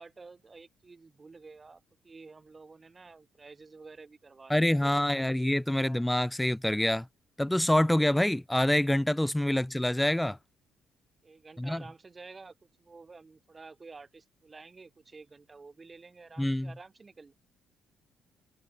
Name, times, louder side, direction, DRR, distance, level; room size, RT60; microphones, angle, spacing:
voice 1, 0.0-5.4 11.2-17.3, right 4 dB, 30° right, 2.7 m, -51 dB
voice 2, 4.5-7.1 7.4-10.4 11.6-11.8 16.4-16.7, left 1 dB, 5° left, 0.4 m, -26 dB
supercardioid pair, 70°, 0 cm